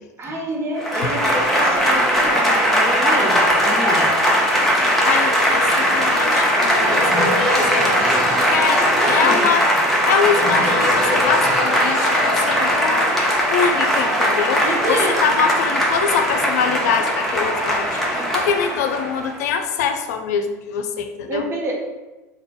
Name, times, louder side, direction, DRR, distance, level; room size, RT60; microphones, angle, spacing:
voice 1, 0.2-4.1 8.6-9.5 10.6-10.7 14.6-15.2 21.3-21.7, right 1 dB, 30° right, -1 dB, 0.8 m, -27 dB
Applause / Crowd, 0.8-19.3, equal, ahead, 0.8 m, -19 dB
voice 2, 5.0-8.2 8.5-9.6 10.1-13.1 13.5-21.4, left 6 dB, 70° left, 6 dB, 0.4 m, -24 dB
3.3 x 2.3 x 3.7 m, 1.1 s
hypercardioid pair, 80°, 9 cm